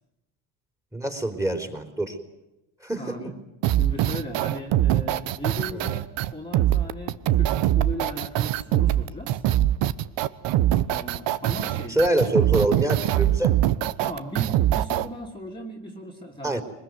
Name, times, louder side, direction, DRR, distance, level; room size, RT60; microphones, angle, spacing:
voice 1, 0.9-2.2 2.8-3.2 5.7-5.8 11.9-13.5 16.4-16.6, right 1 dB, 5° right, 7 dB, 3.9 m, -25 dB
voice 2, 3.0-9.4 10.9-12.0 14.0-16.6, equal, 10° left, 0 dB, 2.9 m, -37 dB
sound 1, 3.6-15.1, right 13 dB, 65° right, 1.2 m, -22 dB
24.0 x 21.0 x 9.5 m, 0.94 s
supercardioid pair, 95°, 47 cm